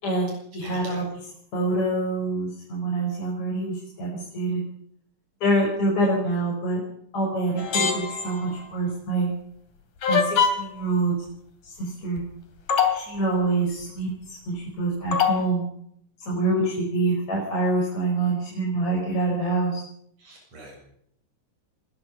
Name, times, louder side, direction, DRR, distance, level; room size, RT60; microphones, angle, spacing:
voice 1, 0.0-1.0 1.5-4.6 5.4-6.8 7.1-9.3 10.1-11.1 11.6-12.2 12.9-14.1 14.5-15.6 16.3-19.8, right 2 dB, 65° left, -2 dB, 6.6 m, -26 dB
voice 2, 0.6-1.0 20.2-20.8, right 1 dB, 60° right, 0 dB, 8.8 m, -43 dB
sound 1, 7.6-8.5 10.0-10.8 12.2-12.3 12.7-13.1 15.1-15.5, left 6 dB, 85° left, 4.5 m, -23 dB
23.0 x 21.5 x 5.5 m, 0.68 s
omnidirectional pair, 3.5 m